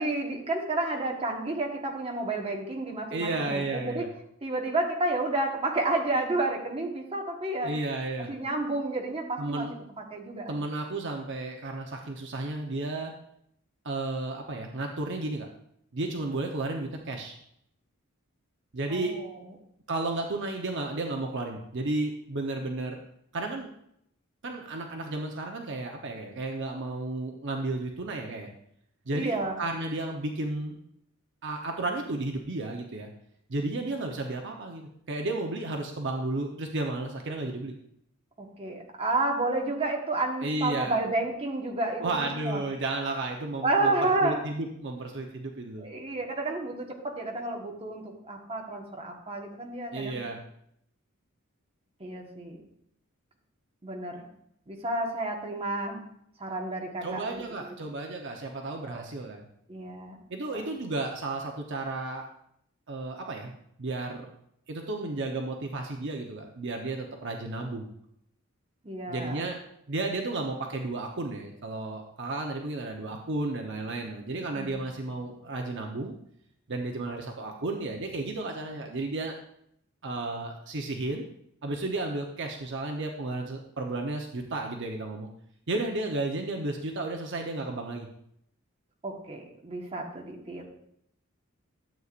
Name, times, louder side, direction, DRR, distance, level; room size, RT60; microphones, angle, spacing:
voice 1, 0.0-4.1 4.4-7.7 8.2-9.7 10.1-10.5 18.9-19.3 29.1-29.6 38.4-42.6 43.6-44.4 45.8-50.3 52.0-52.6 53.8-54.3 54.7-56.0 56.4-57.7 58.9-59.1 59.7-60.2 68.8-69.5 74.6-74.8 89.0-90.7, right 2 dB, 30° right, 0 dB, 1.4 m, -31 dB
voice 2, 3.1-4.1 7.6-8.3 9.4-9.8 10.5-13.1 13.8-15.5 15.9-17.4 18.7-19.2 19.9-23.0 23.3-23.7 24.4-28.5 29.1-30.8 31.4-33.1 33.5-37.8 40.4-41.0 42.0-45.9 49.9-50.4 57.0-59.4 60.3-62.3 62.9-64.3 64.7-67.9 69.1-69.6 69.9-76.1 76.7-79.3 80.0-81.3 81.6-85.3 85.7-88.1, right 2 dB, 60° right, 2 dB, 0.9 m, -33 dB
12.5 x 8.1 x 2.5 m, 0.72 s
head